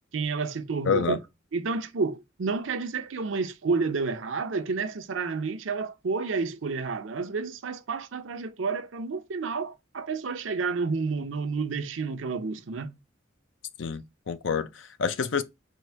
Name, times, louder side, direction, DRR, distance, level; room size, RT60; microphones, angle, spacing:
voice 1, 0.1-1.2 1.5-12.9, right 4 dB, 75° right, 0.6 m, -30 dB
voice 2, 0.9-1.2 13.8-15.4, left 6 dB, 70° left, 0.5 m, -28 dB
4.5 x 2.6 x 4.5 m
head